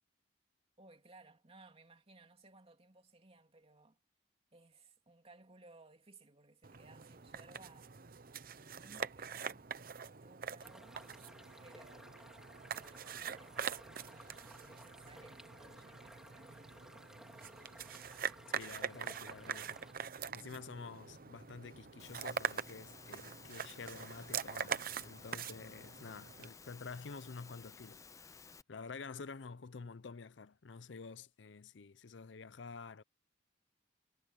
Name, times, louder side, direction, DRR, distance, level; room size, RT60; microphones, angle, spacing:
voice 1, 0.8-4.0 4.5-7.9 8.5-11.0 11.6-16.8, right 2 dB, 35° right, 2.8 m, -61 dB
sound 1, 6.6-26.5, right 7 dB, 55° right, 0.9 m, -44 dB
sound 2, 10.6-19.9, equal, 5° right, 3.4 m, -57 dB
voice 2, 18.5-19.8 20.3-33.0, left 4 dB, 80° left, 0.6 m, -49 dB
Engine / Mechanisms, 22.0-28.6, left 5 dB, 20° left, 0.5 m, -56 dB
head